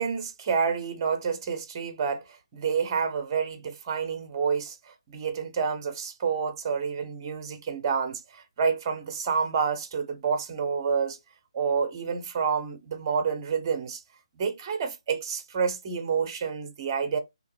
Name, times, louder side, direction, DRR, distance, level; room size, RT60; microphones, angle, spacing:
voice 1, 0.0-11.2 11.5-14.0 14.4-17.2, right 6 dB, 35° right, 1.0 m, -29 dB
3.5 x 2.9 x 4.7 m
figure-of-eight pair, 150°, 3 cm